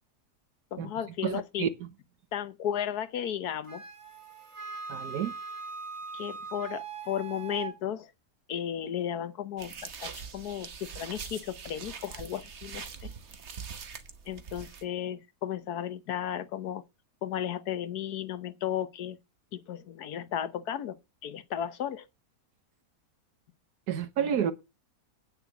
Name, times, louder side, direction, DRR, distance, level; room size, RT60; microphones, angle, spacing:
voice 1, 0.7-1.7 2.3-3.8 6.1-8.1 8.5-13.1 14.3-16.8 17.2-19.2 19.5-21.0 21.2-22.1 24.2-24.5, left 10 dB, 80° left, 1.4 m, -34 dB
voice 2, 1.2-1.7 4.9-5.3 23.9-24.5, right 9 dB, 85° right, 1.6 m, -29 dB
Wind instrument woodwind instrument, 3.7-7.7, right 5 dB, 20° right, 1.3 m, -41 dB
sound 1, 9.6-14.8, right 6 dB, 50° right, 1.3 m, -43 dB
9.2 x 6.5 x 7.1 m
omnidirectional pair, 1.6 m